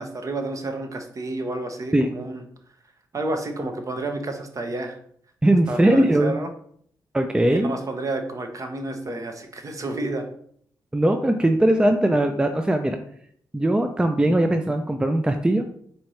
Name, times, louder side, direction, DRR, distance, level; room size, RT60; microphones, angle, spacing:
voice 1, 0.0-2.4 3.1-5.0 5.7-6.5 7.5-10.3, right 2 dB, 40° right, 5 dB, 0.8 m, -30 dB
voice 2, 5.4-6.4 7.1-7.7 10.9-13.0 13.5-15.7, right 1 dB, 10° right, 6 dB, 0.4 m, -20 dB
4.3 x 2.7 x 3.1 m, 0.64 s
supercardioid pair, 45°, 8 cm